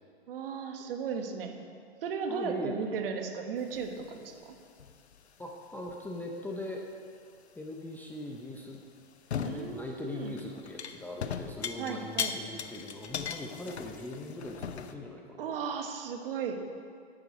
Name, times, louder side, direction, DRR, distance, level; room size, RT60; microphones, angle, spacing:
voice 1, 0.3-1.6 2.0-4.5 9.4-10.3 11.8-12.3 15.4-16.6, right 6 dB, 60° right, 5 dB, 1.3 m, -35 dB
voice 2, 2.3-2.8 5.4-6.9 7.6-8.8 9.4-15.6, left 1 dB, 5° left, 0 dB, 0.5 m, -40 dB
sound 1, 3.6-4.4 4.8-5.2 5.9-6.0 8.7-8.8 9.3-9.8 10.2-14.9, left 7 dB, 85° left, 0.7 m, -38 dB
11.0 x 6.7 x 5.0 m, 2.3 s
hypercardioid pair, 120°, 32 cm